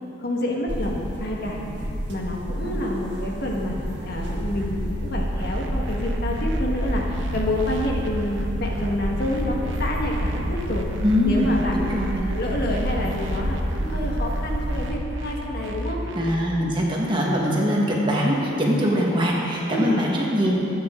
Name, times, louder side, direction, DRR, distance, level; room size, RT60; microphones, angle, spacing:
voice 1, 0.2-1.6 2.1-3.7 4.0-10.9 11.2-11.9 12.2-16.0 19.7-20.0, left 1 dB, 50° left, -2 dB, 1.8 m, -28 dB
sound 1, 0.7-14.9, equal, 60° right, 1.8 m, -29 dB
sound 2, 5.3-16.3, right 1 dB, 80° right, 0.9 m, -33 dB
voice 2, 11.0-12.2 16.1-20.6, equal, 25° right, -3 dB, 1.8 m, -22 dB
22.0 x 8.8 x 3.9 m, 2.9 s
head